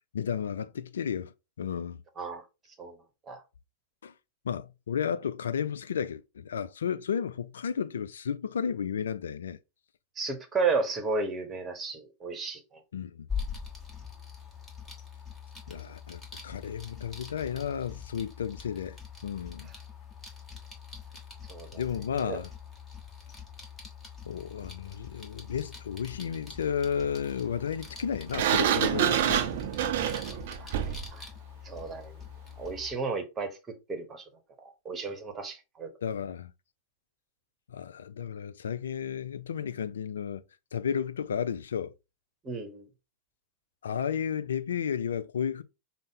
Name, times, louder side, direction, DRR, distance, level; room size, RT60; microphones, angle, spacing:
voice 1, 0.1-1.3 1.6-2.0 4.0-4.1 4.4-9.6 12.9-13.3 15.7-19.0 19.2-19.7 21.7-22.5 24.2-29.5 36.0-36.5 37.7-40.4 40.7-41.9 43.8-45.6, left 7 dB, 65° left, 0.3 m, -33 dB
voice 2, 10.2-12.8 21.5-21.8 22.2-22.4 30.3-31.3 31.6-32.2 32.6-33.6 33.9-34.2 34.6-35.9 42.4-42.9, right 4 dB, 20° right, 1.0 m, -33 dB
sound 1, 13.3-32.9, left 6 dB, 15° left, 1.2 m, -44 dB
Sliding door, 28.3-31.1, right 10 dB, 55° right, 0.5 m, -27 dB
5.3 x 2.0 x 3.6 m
figure-of-eight pair, 90°, 0 cm